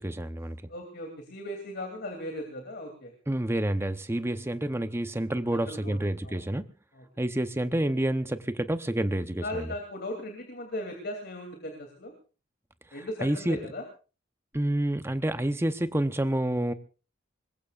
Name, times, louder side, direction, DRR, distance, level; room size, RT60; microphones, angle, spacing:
voice 1, 0.0-0.6 3.3-6.7 7.2-9.7 13.2-13.6 14.5-16.7, right 1 dB, 15° right, 10 dB, 0.8 m, -28 dB
voice 2, 0.7-3.1 5.5-6.0 6.2-6.4 6.9-7.0 9.4-12.1 12.9-13.8, left 1 dB, 55° left, 3 dB, 2.8 m, -37 dB
25.0 x 21.0 x 2.5 m, 0.35 s
head